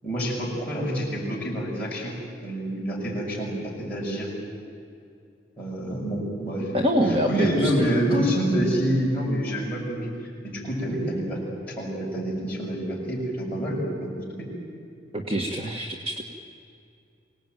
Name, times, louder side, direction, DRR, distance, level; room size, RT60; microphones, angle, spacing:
voice 1, 0.0-2.1 2.4-4.3 5.6-6.8 7.1-10.1 10.4-11.4 11.7-14.5, equal, 10° left, -6 dB, 7.1 m, -27 dB
voice 2, 6.7-7.9 15.1-16.3, equal, 30° right, 2 dB, 1.6 m, -25 dB
25.0 x 18.5 x 9.4 m, 2.5 s
head